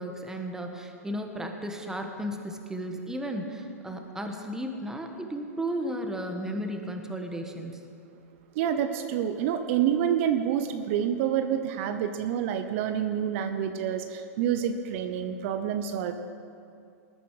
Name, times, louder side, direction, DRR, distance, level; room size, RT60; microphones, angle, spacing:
voice 1, 0.0-7.8, equal, 5° right, 3 dB, 1.5 m, -34 dB
voice 2, 8.5-16.1, right 9 dB, 55° right, 8 dB, 0.9 m, -28 dB
19.5 x 10.0 x 5.0 m, 2.5 s
hypercardioid pair, 115°, 8 cm